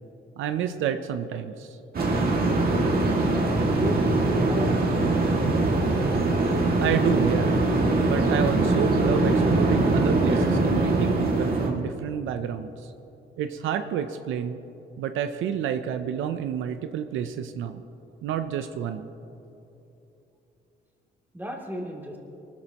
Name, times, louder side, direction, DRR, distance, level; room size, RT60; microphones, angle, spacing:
voice 1, 0.4-1.8 6.8-7.5 8.0-12.9 13.4-14.6 15.0-17.8 18.2-19.1, right 8 dB, 80° right, 9 dB, 0.6 m, -29 dB
sound 1, 1.9-11.7, right 2 dB, 50° right, 2.2 m, -22 dB
voice 2, 3.6-4.7 21.3-22.2, equal, 10° right, -1 dB, 2.8 m, -33 dB
21.5 x 13.5 x 3.0 m, 2.9 s
cardioid pair, 90°, 20 cm